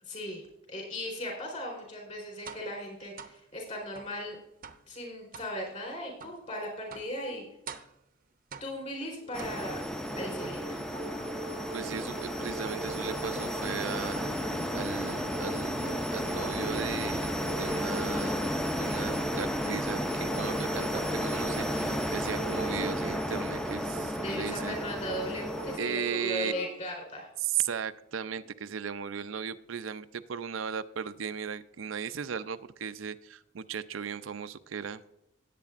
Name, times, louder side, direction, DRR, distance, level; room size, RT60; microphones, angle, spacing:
voice 1, 0.0-4.4 4.9-7.4 8.6-9.8 10.2-10.8 24.2-27.3, left 1 dB, 40° left, 0 dB, 4.0 m, -38 dB
sound 1, 2.4-2.7 3.2-3.4 3.9-4.2 4.6-4.9 5.3-5.5 6.2-6.4 6.9-7.2 7.7-8.0 8.5-8.9 9.4-9.9 10.4-11.5 11.9-12.3 12.6-13.0 13.3-13.6 14.1-14.5 15.1-15.4 15.9-16.4 16.7-17.1, right 5 dB, 45° right, 0.6 m, -47 dB
sound 2, 9.2-26.8, right 2 dB, 55° left, 1.4 m, -42 dB
sound 3, 9.3-25.8, equal, 5° left, 0.5 m, -33 dB
voice 2, 11.7-14.2 14.7-18.4 18.8-24.8 25.8-26.5 27.4-35.0, right 7 dB, 90° right, 11 dB, 0.5 m, -36 dB
17.5 x 8.3 x 2.5 m, 0.84 s
head